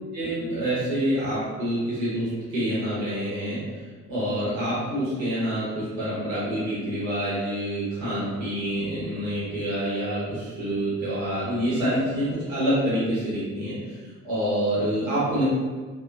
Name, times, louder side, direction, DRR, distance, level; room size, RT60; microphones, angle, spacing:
voice 1, 0.1-3.8 4.1-15.4, equal, 80° right, -9 dB, 0.9 m, -27 dB
2.9 x 2.2 x 2.4 m, 1.4 s
figure-of-eight pair, 45°, 41 cm